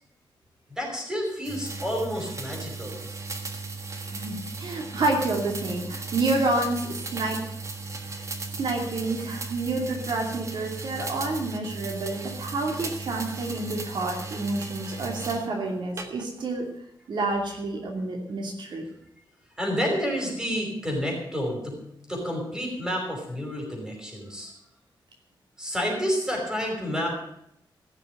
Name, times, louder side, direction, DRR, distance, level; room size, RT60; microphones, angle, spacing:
voice 1, 0.8-3.0 18.7-18.8 19.6-21.8 22.1-24.5 25.6-27.2, equal, 5° right, 0 dB, 5.3 m, -29 dB
sound 1, 1.4-15.5 16.0-16.5, right 3 dB, 35° right, 1.5 m, -36 dB
voice 2, 4.0-7.4 8.5-16.7 17.1-18.9, right 2 dB, 65° right, 1 dB, 2.7 m, -29 dB
15.5 x 6.9 x 9.1 m, 0.77 s
wide cardioid pair, 175°, 8 cm